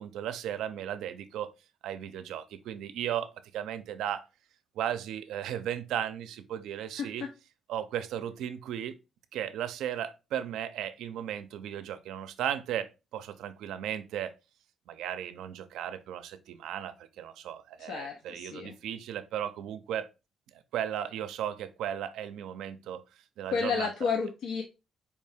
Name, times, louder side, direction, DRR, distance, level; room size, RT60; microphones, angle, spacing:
voice 1, 0.0-1.5 1.8-4.3 4.8-7.2 7.7-9.0 9.3-14.3 14.9-20.1 20.5-23.0 23.4-23.9, right 10 dB, 85° right, 0.4 m, -35 dB
voice 2, 17.8-18.7 23.5-24.6, left 5 dB, 80° left, 0.6 m, -31 dB
4.5 x 2.7 x 3.4 m
cardioid pair, 90°, 0 cm